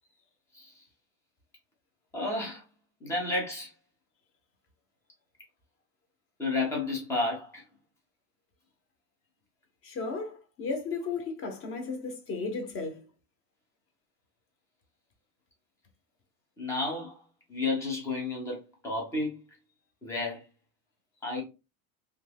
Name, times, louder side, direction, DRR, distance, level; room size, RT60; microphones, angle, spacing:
voice 1, 2.1-2.6 3.0-3.7 6.4-7.6 16.6-17.2 17.5-19.4 20.0-20.4 21.2-21.4, left 2 dB, 5° left, 0.3 m, -31 dB
voice 2, 9.8-13.0, left 4 dB, 30° left, 0.7 m, -34 dB
2.8 x 2.3 x 3.3 m
supercardioid pair, 160°, 46 cm